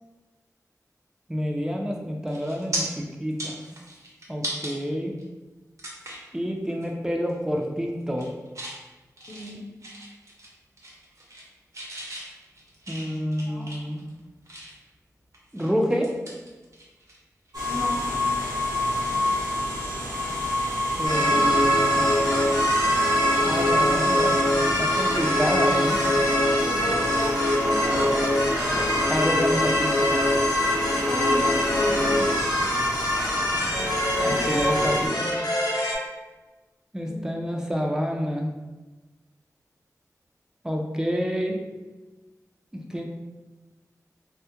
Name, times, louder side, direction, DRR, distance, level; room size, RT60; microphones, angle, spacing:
voice 1, 1.3-3.6 4.3-5.1 6.3-8.3 12.9-14.0 15.5-16.1 21.0-22.1 23.5-26.0 29.1-30.1 34.2-35.3 36.9-38.5 40.6-41.6 42.7-43.0, equal, 10° right, 1 dB, 0.4 m, -28 dB
sound 1, 1.7-1.9 2.3-2.8 3.2-4.7 5.2-5.3 5.8-6.3 6.7-6.9 7.2-7.6 8.0-8.8 9.2-10.5 10.8-11.5 11.7-14.9 15.3-17.2 17.4-17.6 19.5-19.7, right 1 dB, 55° right, 0.6 m, -37 dB
voice 2, 9.3-9.6 13.4-13.7 17.7-18.0 26.7-27.4 27.6-28.2 30.9-32.2 37.0-37.3, equal, 35° left, -4 dB, 0.6 m, -35 dB
sound 2, 17.5-35.1, equal, 90° right, 0.7 m, -26 dB
sound 3, 21.0-35.9, left 1 dB, 85° left, 0.5 m, -24 dB
2.2 x 2.0 x 2.8 m, 1.2 s
wide cardioid pair, 60°, 6 cm